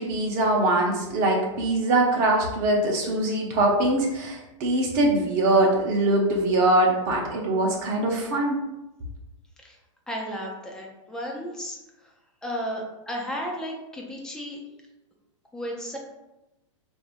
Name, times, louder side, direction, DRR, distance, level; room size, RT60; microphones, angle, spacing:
voice 1, 0.0-8.5, right 2 dB, 35° right, -1 dB, 1.0 m, -22 dB
voice 2, 10.1-12.1 12.4-14.6 15.5-16.0, equal, 5° left, -1 dB, 0.5 m, -34 dB
5.2 x 2.6 x 2.5 m, 0.95 s
hypercardioid pair, 155°, 17 cm